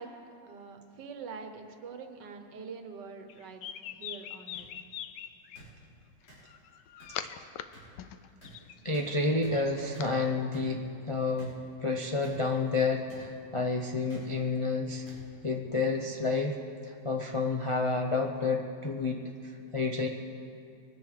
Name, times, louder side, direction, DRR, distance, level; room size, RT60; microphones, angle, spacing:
voice 1, 0.0-3.7 3.9-4.7, right 5 dB, 80° right, 6 dB, 1.7 m, -45 dB
sound 1, 3.3-5.6 6.5-7.6 8.0-10.1, left 10 dB, 85° left, 1.3 m, -42 dB
sound 2, 4.5-4.6 5.5-5.7 6.3-6.4 7.0-7.1 7.7-7.8 8.4-8.5 8.9-9.1 9.4-9.5 9.9-10.1 10.5-10.7 11.4-11.5 12.2-12.3 13.1-13.2 14.1-14.3 15.0-15.2 16.0-16.2, equal, 65° left, 5.7 m, -50 dB
voice 2, 8.8-15.0 15.4-16.6 16.8-20.1, left 3 dB, 45° left, 1 dB, 0.4 m, -30 dB
22.5 x 10.0 x 5.0 m, 2.4 s
omnidirectional pair, 1.9 m